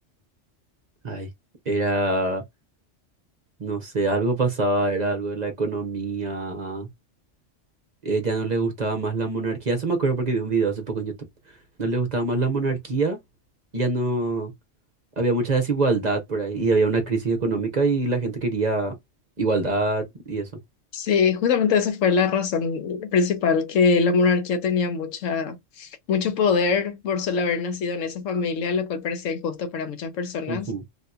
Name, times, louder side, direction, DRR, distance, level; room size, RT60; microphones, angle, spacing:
voice 1, 1.7-2.4 3.6-6.9 8.0-11.1 11.8-13.2 13.7-14.5 15.2-18.9 19.4-20.5 30.5-30.8, right 3 dB, 40° right, 0.7 m, -24 dB
voice 2, 20.9-30.7, left 5 dB, 85° left, 1.1 m, -23 dB
3.5 x 2.7 x 2.3 m
omnidirectional pair, 1.3 m